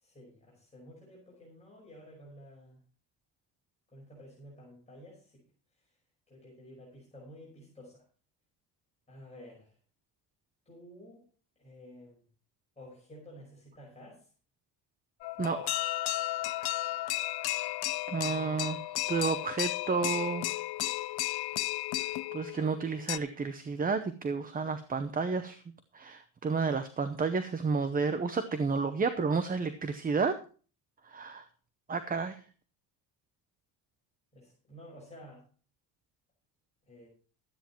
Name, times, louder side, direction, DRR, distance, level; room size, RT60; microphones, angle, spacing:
voice 1, 0.0-2.8 3.9-5.4 6.3-8.0 9.1-9.7 10.7-11.3 11.6-12.2 12.8-14.3 18.2-18.6 34.3-35.4 36.9-37.1, equal, 15° left, -5 dB, 5.3 m, -52 dB
sound 1, 15.2-23.2, left 16 dB, 60° left, 0.5 m, -34 dB
voice 2, 15.4-15.8 18.1-20.6 22.3-25.6 25.9-30.4 31.0-31.4 31.9-32.4, right 4 dB, 20° right, 10 dB, 0.7 m, -31 dB
13.0 x 9.0 x 4.4 m, 0.39 s
cardioid pair, 150°, 45 cm